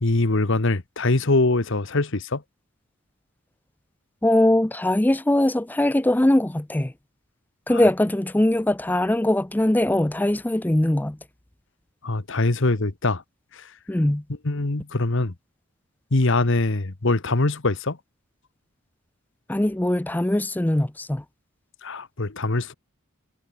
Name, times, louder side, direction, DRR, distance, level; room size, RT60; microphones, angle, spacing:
voice 1, 0.0-2.4 7.7-7.8 12.0-13.2 13.5-13.6 14.4-15.3 16.1-18.0 21.8-22.7, left 2 dB, 60° left, 1.3 m, -23 dB
voice 2, 4.2-6.9 7.7-11.2 13.9-14.2 19.5-21.2, left 1 dB, 10° left, 0.4 m, -21 dB
head